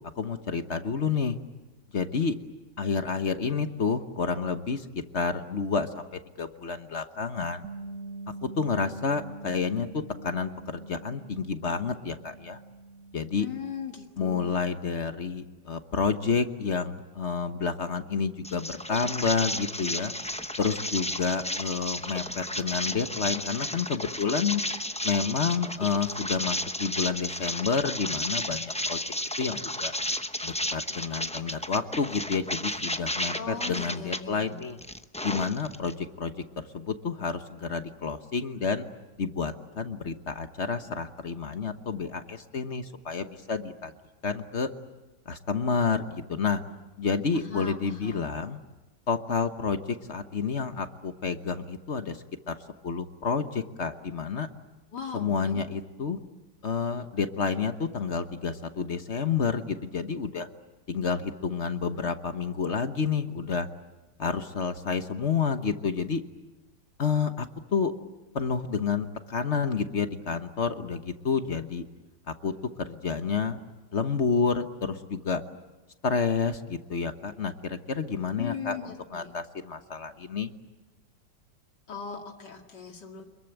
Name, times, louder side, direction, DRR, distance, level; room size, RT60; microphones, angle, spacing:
voice 1, 0.2-1.4 1.9-2.4 2.8-6.1 6.4-7.7 8.4-12.6 13.1-13.5 14.2-20.1 20.6-24.6 25.0-29.9 30.4-34.8 35.2-38.8 39.2-43.9 44.2-44.7 45.3-46.6 47.0-48.6 49.1-52.5 52.8-54.5 55.1-56.2 56.6-60.5 60.9-63.7 64.2-66.2 67.0-67.9 68.3-71.9 72.4-73.6 73.9-75.4 76.0-80.5, left 5 dB, 45° left, 9 dB, 1.3 m, -29 dB
Bass guitar, 7.6-13.9, right 3 dB, 55° right, 1.6 m, -44 dB
voice 2, 13.4-14.7 33.4-34.6 47.3-48.4 54.9-55.6 78.4-79.3 81.9-83.2, left 6 dB, 90° left, 3 dB, 2.8 m, -39 dB
sound 1, 18.4-34.2 34.6-35.9, left 1 dB, 10° left, 0.4 m, -33 dB
27.0 x 22.0 x 9.1 m, 1.1 s
omnidirectional pair, 1.8 m